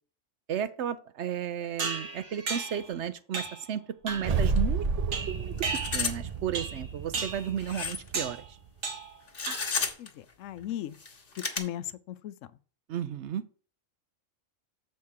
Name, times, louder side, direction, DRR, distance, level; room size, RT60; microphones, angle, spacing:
voice 1, 0.5-5.5 5.9-8.4 12.9-13.4, right 9 dB, 65° right, 0.9 m, -34 dB
sound 1, 1.8-2.9 3.3-3.7 4.1-4.4 5.1-6.2 6.5-6.8 7.1-7.5 8.1-8.4 8.8-9.2 9.5-9.9, right 4 dB, 85° right, 1.8 m, -35 dB
sound 2, 4.1-8.5, right 4 dB, 45° right, 0.5 m, -31 dB
sound 3, 4.4-4.6 4.8-4.9 5.6-6.2 6.5-6.6 7.6-8.1 9.3-10.1 10.9-11.6, left 5 dB, 45° left, 1.3 m, -32 dB
voice 2, 10.0-11.0 11.4-12.4, left 12 dB, 75° left, 0.9 m, -37 dB
7.0 x 4.4 x 6.4 m
omnidirectional pair, 1.3 m